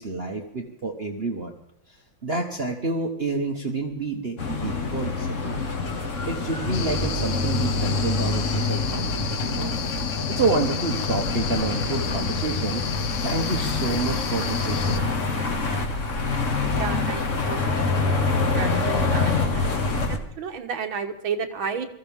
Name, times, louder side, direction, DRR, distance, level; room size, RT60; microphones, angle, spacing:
voice 1, 0.0-1.5 2.2-5.6 6.3-9.7 10.3-12.9 13.2-15.0, right 3 dB, 35° right, 2 dB, 1.3 m, -28 dB
sound 1, 4.4-20.2, left 3 dB, 40° left, 1.7 m, -26 dB
sound 2, 6.7-15.0, left 9 dB, 65° left, 1.4 m, -34 dB
voice 2, 16.8-18.3 18.5-21.9, right 6 dB, 75° right, 5 dB, 2.1 m, -33 dB
20.5 x 15.0 x 3.6 m, 0.72 s
omnidirectional pair, 2.2 m